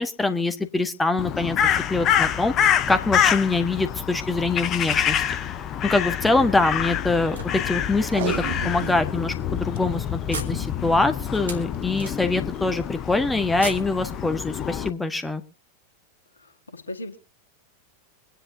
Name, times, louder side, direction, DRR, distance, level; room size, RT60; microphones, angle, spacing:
voice 1, 0.0-1.6 1.9-2.5 2.9-5.2 5.8-15.4, left 3 dB, 10° left, 9 dB, 1.6 m, -24 dB
Crow, 1.2-14.9, left 9 dB, 30° left, 0.9 m, -26 dB
sound 1, 7.3-8.1 8.9-9.0 9.3-9.5 10.3-12.6 13.5-14.7, right 3 dB, 70° right, 2.9 m, -39 dB
Packing tape duct tape, 8.0-9.1 9.5-9.6 9.8-9.9 10.4-10.7 11.7-12.0 12.6-12.7, right 13 dB, 55° right, 0.8 m, -33 dB
voice 2, 16.4-17.2, left 1 dB, 75° left, 4 dB, 1.9 m, -37 dB
25.0 x 10.0 x 2.8 m, 0.33 s
figure-of-eight pair, 90°, 0 cm